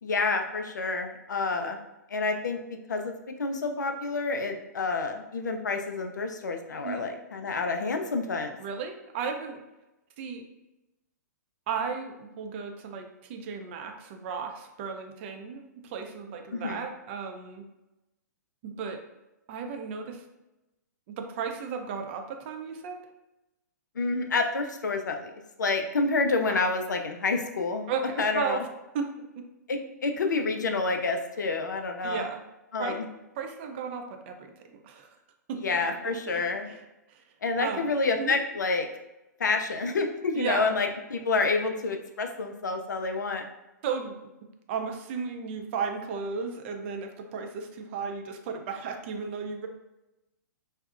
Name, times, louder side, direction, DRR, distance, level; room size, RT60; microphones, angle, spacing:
voice 1, 0.0-1.8 2.1-8.6 16.5-16.9 24.0-25.3 25.6-27.9 28.2-28.6 29.7-32.2 32.7-33.0 35.5-36.7 37.4-38.9 39.4-43.4, left 3 dB, 75° left, 5 dB, 0.4 m, -28 dB
voice 2, 8.6-9.6 10.2-10.4 11.7-17.6 18.6-19.0 19.5-20.2 21.1-23.0 26.5-26.6 27.9-28.6 28.9-29.2 32.0-32.4 32.8-33.0 33.4-35.2 35.5-35.8 36.0-36.4 36.7-36.8 37.1-37.2 37.6-37.9 38.2-38.4 40.3-40.7 43.8-44.2 44.7-49.7, right 6 dB, 40° right, 4 dB, 0.4 m, -34 dB
2.6 x 2.0 x 2.4 m, 0.97 s
figure-of-eight pair, 115°, 10 cm